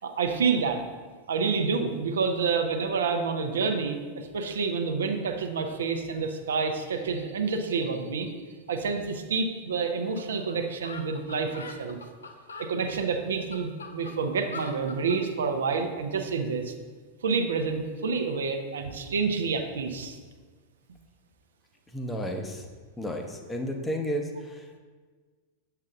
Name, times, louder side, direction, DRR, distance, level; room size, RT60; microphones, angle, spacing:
voice 1, 0.0-0.8 1.3-8.3 8.7-12.0 12.6-16.7 17.2-20.2, right 5 dB, 65° right, 6 dB, 0.6 m, -28 dB
sound 1, 10.2-10.3 10.5-10.6 10.8-12.7 13.3-15.2, left 3 dB, 70° left, 0.6 m, -42 dB
voice 2, 21.9-22.7 23.0-24.8, equal, 10° left, 3 dB, 0.7 m, -32 dB
7.3 x 6.6 x 2.4 m, 1.4 s
figure-of-eight pair, 90°, 0 cm